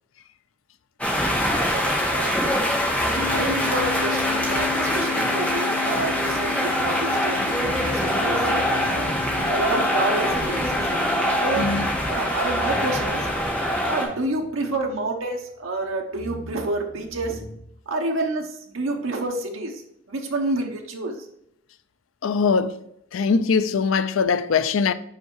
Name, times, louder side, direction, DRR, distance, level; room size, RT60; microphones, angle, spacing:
sound 1, 1.0-14.0, equal, 5° left, 1.3 m, -24 dB
voice 1, 1.3-2.6 2.9-9.1 9.5-11.7 12.0-13.3 13.8-17.4 17.9-19.8 20.1-21.3, right 2 dB, 80° right, 0.9 m, -29 dB
sound 2, 2.6-5.6 6.7-10.6 11.3-15.3 15.6-17.6, left 1 dB, 25° left, 0.7 m, -41 dB
sound 3, 3.2-12.0, left 11 dB, 50° left, 1.2 m, -34 dB
voice 2, 22.2-22.7 23.1-24.9, left 5 dB, 80° left, 0.4 m, -21 dB
5.6 x 4.7 x 4.5 m
head